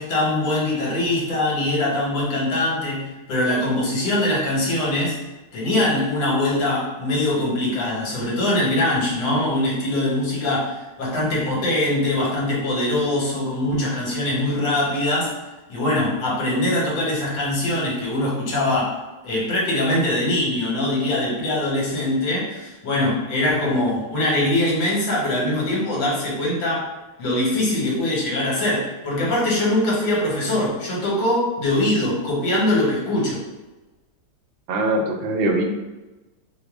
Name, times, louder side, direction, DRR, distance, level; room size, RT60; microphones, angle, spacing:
voice 1, 0.0-5.2 5.5-15.4 15.7-19.0 19.2-26.9 27.2-33.4, left 1 dB, 80° left, -5 dB, 1.8 m, -22 dB
voice 2, 34.7-35.6, right 2 dB, 90° right, 2 dB, 1.4 m, -22 dB
3.7 x 2.1 x 3.4 m, 1.1 s
omnidirectional pair, 2.1 m